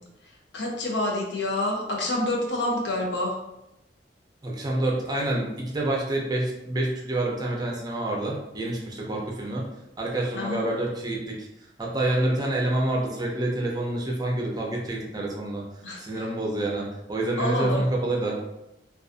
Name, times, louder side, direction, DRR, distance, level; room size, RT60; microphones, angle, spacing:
voice 1, 0.5-3.4 10.3-10.7 15.8-16.0 17.4-17.8, left 1 dB, 90° left, 0 dB, 0.6 m, -27 dB
voice 2, 4.4-9.7 10.0-11.5 11.8-15.6 16.0-18.4, right 1 dB, 25° right, -2 dB, 0.5 m, -27 dB
2.4 x 2.4 x 2.4 m, 0.88 s
head